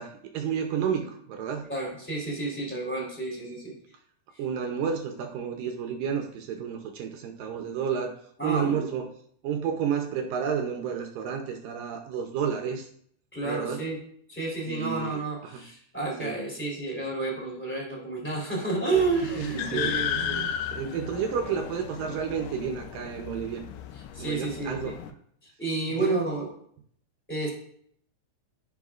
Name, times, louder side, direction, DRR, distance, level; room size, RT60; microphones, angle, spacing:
voice 1, 0.0-1.7 4.4-8.2 8.4-9.1 9.4-12.9 13.4-13.9 14.7-15.7 16.2-16.4 19.2-23.6 24.2-25.0 25.9-26.1, right 7 dB, 80° right, 3 dB, 2.0 m, -31 dB
voice 2, 1.7-3.8 8.4-8.9 13.3-14.0 14.3-20.4 24.1-24.9 25.6-26.5 27.3-27.5, right 3 dB, 5° left, -3 dB, 2.6 m, -30 dB
sound 1, 18.9-25.1, left 8 dB, 80° left, 2.6 m, -35 dB
10.5 x 10.0 x 2.5 m, 0.65 s
omnidirectional pair, 4.8 m